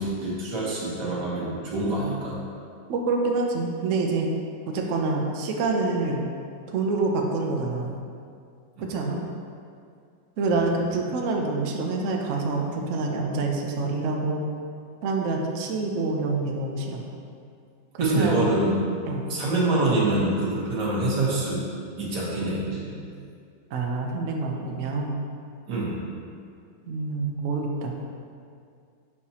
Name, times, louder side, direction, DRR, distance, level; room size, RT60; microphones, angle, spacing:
voice 1, 0.0-2.4 8.8-8.9 10.5-10.6 18.0-18.8 19.3-21.7 22.0-23.0 25.7-26.0, right 2 dB, 60° right, -6 dB, 1.8 m, -25 dB
voice 2, 2.9-4.3 4.7-6.3 6.7-8.0 8.8-9.2 10.4-14.4 15.0-17.0 17.9-18.6 19.0-19.3 23.7-25.2 26.9-28.0, right 3 dB, 85° right, 1 dB, 0.6 m, -27 dB
6.5 x 5.8 x 2.8 m, 2.3 s
omnidirectional pair, 2.1 m